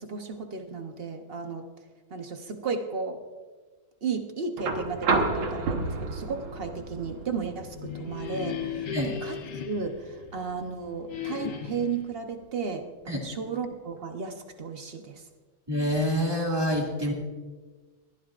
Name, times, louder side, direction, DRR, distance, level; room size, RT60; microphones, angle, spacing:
voice 1, 0.0-1.7 2.1-3.2 4.0-9.4 9.7-15.2, right 5 dB, 45° right, 5 dB, 0.8 m, -34 dB
sound 1, 4.6-12.6 14.0-14.1, right 3 dB, 85° right, 2.2 m, -33 dB
sound 2, 7.5-10.6 11.1-12.1, left 8 dB, 60° left, 1.5 m, -36 dB
voice 2, 15.7-17.1, equal, 10° right, -2 dB, 2.1 m, -26 dB
20.5 x 14.5 x 2.5 m, 1.3 s
omnidirectional pair, 2.2 m